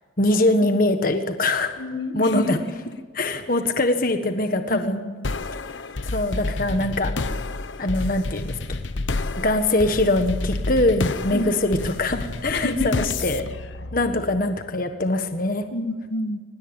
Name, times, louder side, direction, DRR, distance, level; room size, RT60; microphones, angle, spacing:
voice 1, 0.2-1.8 2.1-2.6 3.1-5.0 6.1-7.1 7.8-8.8 9.4-12.9 13.2-13.4 13.9-15.6, left 2 dB, 50° left, 7 dB, 1.4 m, -22 dB
voice 2, 1.8-2.7 4.7-5.3 11.3-11.5 12.5-13.1 15.7-16.4, left 1 dB, 65° left, 8 dB, 1.5 m, -28 dB
sound 1, 5.2-14.7, left 2 dB, 85° left, 1.0 m, -30 dB
24.0 x 20.0 x 8.9 m, 1.4 s
head